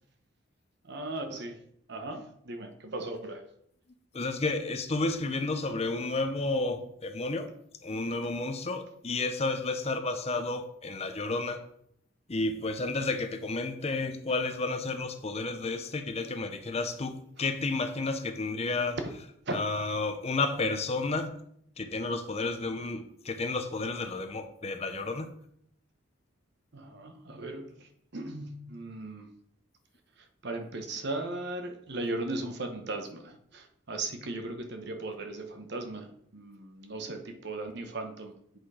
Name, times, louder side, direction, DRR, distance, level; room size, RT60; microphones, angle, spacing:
voice 1, 0.8-1.6 1.9-3.5 8.0-8.2 19.5-19.6 26.7-29.3 30.2-38.6, right 2 dB, 55° right, 6 dB, 0.9 m, -37 dB
voice 2, 4.1-7.5 7.8-11.6 12.3-19.0 19.5-21.4 21.8-25.3, left 3 dB, 30° left, 7 dB, 0.6 m, -31 dB
7.8 x 4.4 x 4.9 m, 0.70 s
head